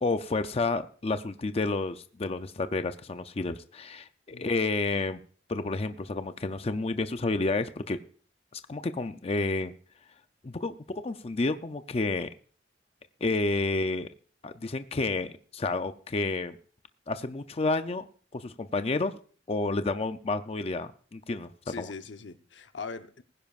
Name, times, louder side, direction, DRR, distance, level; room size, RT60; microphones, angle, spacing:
voice 1, 0.0-5.2 5.5-8.0 8.5-9.7 10.4-10.7 11.0-12.3 13.2-14.1 14.4-16.6 17.1-18.1 18.3-19.2 19.5-21.5 21.8-21.9, left 3 dB, 35° left, 0.5 m, -30 dB
voice 2, 21.7-23.2, left 4 dB, 80° left, 0.8 m, -41 dB
20.5 x 10.5 x 2.4 m
head